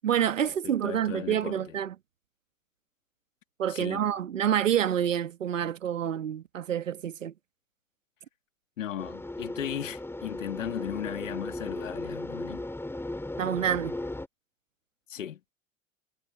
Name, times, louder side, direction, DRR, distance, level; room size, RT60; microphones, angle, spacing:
voice 1, 0.0-2.0 3.6-7.3 13.4-13.9, right 9 dB, 75° right, 1.7 m, -28 dB
voice 2, 0.6-1.8 3.7-4.2 8.8-12.7 15.1-15.4, left 10 dB, 70° left, 2.6 m, -37 dB
sound 1, 9.0-14.3, left 2 dB, 5° left, 5.6 m, -36 dB
figure-of-eight pair, 75°, 39 cm